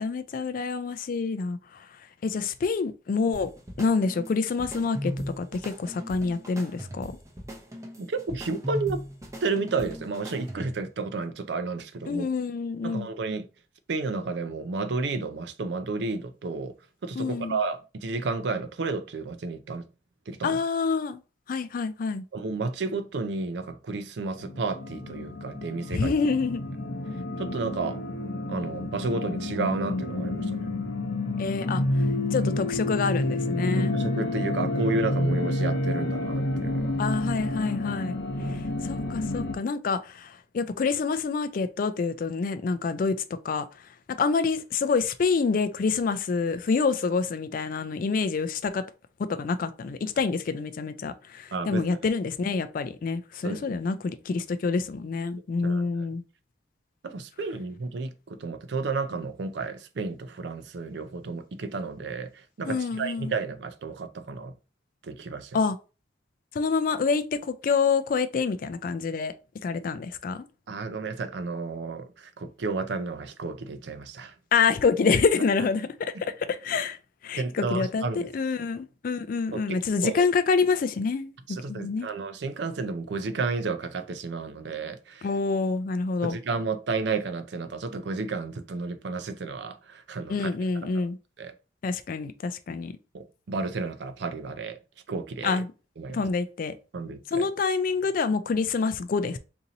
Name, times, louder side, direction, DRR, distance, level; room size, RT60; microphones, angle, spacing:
voice 1, 0.0-1.9 2.2-3.5 3.8-7.2 12.1-13.1 17.2-17.6 20.4-21.2 21.5-22.2 25.9-26.6 31.4-31.8 32.3-33.9 37.0-38.1 38.5-43.2 43.4-43.7 44.1-48.8 49.3-56.2 62.6-63.3 65.5-65.8 66.5-69.3 69.6-70.5 74.5-77.0 77.2-81.4 81.7-82.1 85.2-86.4 90.3-91.2 91.8-92.9 95.4-95.7 96.1-96.7 97.3-99.4, left 4 dB, 45° left, 0.3 m, -27 dB
sound 1, 3.3-10.9, equal, 15° right, 0.6 m, -38 dB
voice 2, 8.0-9.0 9.4-12.3 12.8-13.5 13.9-16.7 17.0-19.9 20.3-20.6 22.3-26.2 27.4-28.0 28.5-30.7 33.8-36.9 38.4-38.7 51.5-51.9 53.4-53.8 55.6-55.9 57.0-64.5 65.0-65.6 70.7-74.4 77.4-78.3 79.5-80.3 81.5-85.3 86.2-90.5 90.8-91.1 91.4-91.5 93.1-94.8 95.1-95.6 96.0-96.3 96.9-97.5, right 3 dB, 60° right, 0.4 m, -32 dB
sound 2, 24.4-39.6, left 1 dB, 70° left, 0.7 m, -29 dB
2.8 x 2.6 x 3.9 m
head